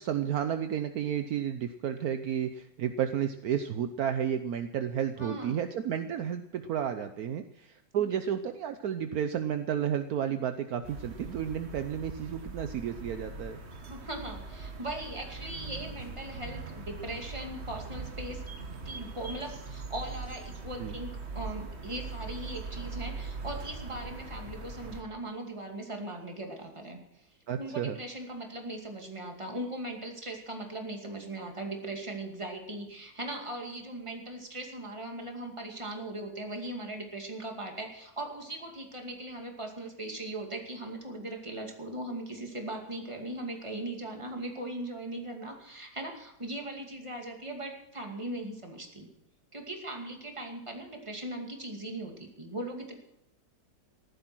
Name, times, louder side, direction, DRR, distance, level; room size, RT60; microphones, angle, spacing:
voice 1, 0.0-13.6 20.8-21.0 27.5-28.0, right 9 dB, 70° right, 9 dB, 1.2 m, -32 dB
voice 2, 5.2-5.6 8.1-8.2 13.8-18.4 18.8-27.3 27.6-49.1 49.5-52.9, right 1 dB, 20° right, 2 dB, 2.4 m, -39 dB
sound 1, 10.8-25.0, right 3 dB, 40° right, 1.8 m, -41 dB
14.5 x 11.5 x 6.1 m, 0.85 s
omnidirectional pair, 1.7 m